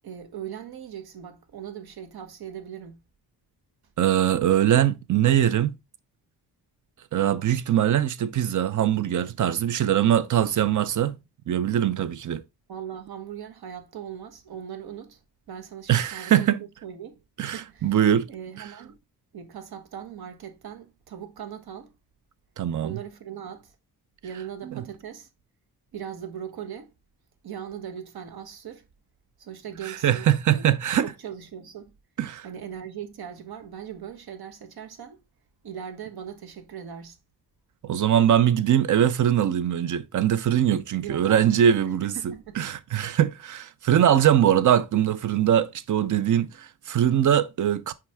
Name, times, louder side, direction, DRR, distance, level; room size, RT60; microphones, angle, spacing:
voice 1, 0.0-3.0 12.7-15.2 15.5-16.5 16.8-18.0 18.3-19.0 19.3-21.9 22.8-23.7 24.2-25.3 25.9-26.9 27.4-28.9 29.4-30.6 31.0-31.9 32.4-35.2 35.6-37.2 41.0-41.4 42.0-42.6, right 9 dB, 70° right, 1.2 m, -39 dB
voice 2, 4.0-5.8 7.1-11.2 11.5-12.4 15.9-16.6 17.4-18.3 22.6-23.0 24.6-24.8 30.0-31.1 32.2-32.5 37.8-47.9, right 10 dB, 50° right, 0.6 m, -22 dB
5.8 x 4.8 x 3.4 m
cardioid pair, 90°, 39 cm